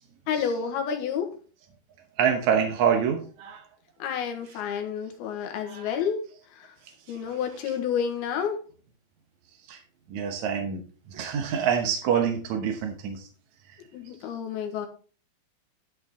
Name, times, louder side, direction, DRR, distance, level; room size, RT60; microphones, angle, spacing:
voice 1, 0.3-1.3 4.0-6.2 6.6-6.7 7.1-8.6 13.9-14.9, left 7 dB, 80° left, 4 dB, 3.4 m, -30 dB
voice 2, 2.2-3.6 5.7-5.9 7.1-7.2 9.7-9.8 10.1-10.8 11.1-13.3, right 8 dB, 65° right, 4 dB, 2.0 m, -26 dB
12.5 x 6.2 x 3.7 m, 0.38 s
omnidirectional pair, 4.4 m